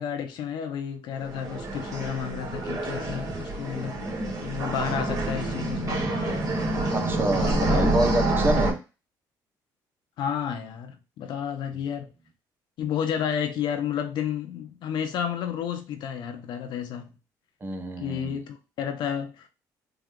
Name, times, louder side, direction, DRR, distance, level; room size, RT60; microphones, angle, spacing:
voice 1, 0.0-4.0 4.4-6.1 7.4-7.8 10.2-12.1 12.8-17.1 18.0-19.5, left 8 dB, 75° left, 0.7 m, -31 dB
sound 1, 1.2-8.7, right 2 dB, 45° right, 1.6 m, -27 dB
voice 2, 6.9-8.8 11.7-11.8 17.6-18.4, right 1 dB, 25° right, 0.7 m, -28 dB
3.9 x 2.3 x 3.6 m
cardioid pair, 95°, 8 cm